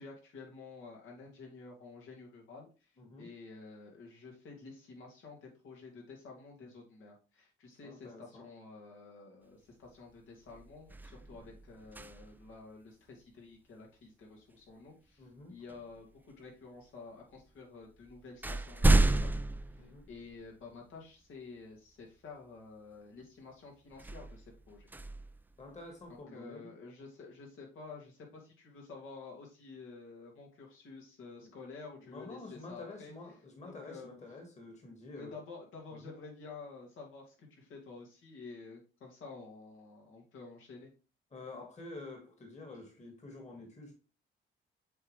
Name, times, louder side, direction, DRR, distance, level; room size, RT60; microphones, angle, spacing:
voice 1, 0.0-2.9 3.2-19.4 19.8-24.9 26.3-33.1 33.6-34.1 35.1-40.9, left 4 dB, 80° left, 2.4 m, -50 dB
voice 2, 3.0-3.3 7.8-8.5 15.2-15.6 19.8-20.1 25.6-26.7 31.4-31.5 32.0-35.4 35.9-36.1 41.3-43.9, left 2 dB, 35° left, 1.9 m, -48 dB
sound 1, 9.8-10.1 10.5-12.6 14.7-14.9 15.7-16.5 17.3-17.4 17.8-20.7 21.2-21.3 23.9-26.1, right 2 dB, 10° right, 0.4 m, -32 dB
7.7 x 3.9 x 3.2 m
cardioid pair, 90°, 20 cm